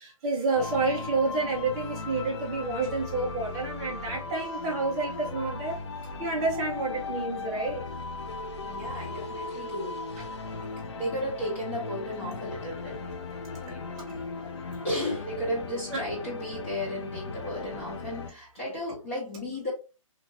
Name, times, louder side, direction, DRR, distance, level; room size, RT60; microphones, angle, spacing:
voice 1, 0.0-7.8 10.4-10.5 14.1-14.2 15.9-16.3, right 3 dB, 10° right, 0.4 m, -30 dB
sound 1, 0.5-18.3, left 4 dB, 55° left, 0.5 m, -37 dB
voice 2, 8.6-10.0 10.6-13.2 13.6-13.9 14.8-19.7, equal, 25° left, 1.0 m, -34 dB
2.9 x 2.4 x 2.8 m
hypercardioid pair, 170°, 17 cm